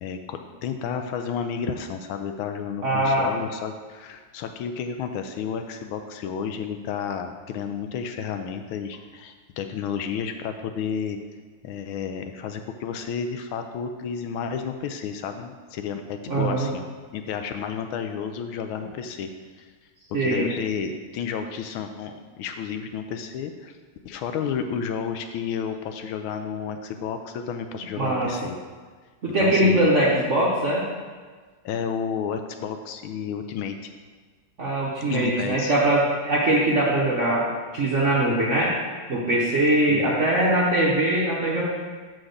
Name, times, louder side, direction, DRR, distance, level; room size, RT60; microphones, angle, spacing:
voice 1, 0.0-11.2 11.6-16.8 17.1-19.3 19.6-19.7 20.1-23.7 24.0-28.6 29.3-29.9 31.6-33.9 35.0-35.7 39.9-40.0, left 7 dB, 75° left, 7 dB, 1.3 m, -31 dB
voice 2, 2.8-3.3 16.3-16.7 20.1-20.5 28.0-28.3 29.2-30.9 34.6-38.7 39.1-41.6, right 1 dB, 55° right, -4 dB, 0.8 m, -22 dB
6.3 x 4.7 x 6.5 m, 1.5 s
omnidirectional pair, 2.4 m